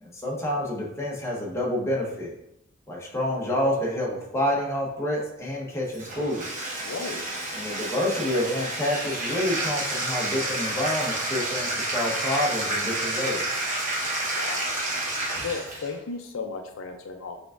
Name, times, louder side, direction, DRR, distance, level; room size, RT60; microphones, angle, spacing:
voice 1, 0.0-2.3 2.9-6.4 7.6-13.4, left 1 dB, 15° left, -4 dB, 0.9 m, -28 dB
Bathtub (filling or washing), 5.9-15.9, right 1 dB, 40° right, 1.0 m, -30 dB
voice 2, 6.8-7.2 14.4-14.7 15.4-17.4, left 4 dB, 70° left, 4 dB, 0.4 m, -34 dB
5.9 x 3.5 x 2.5 m, 0.80 s
head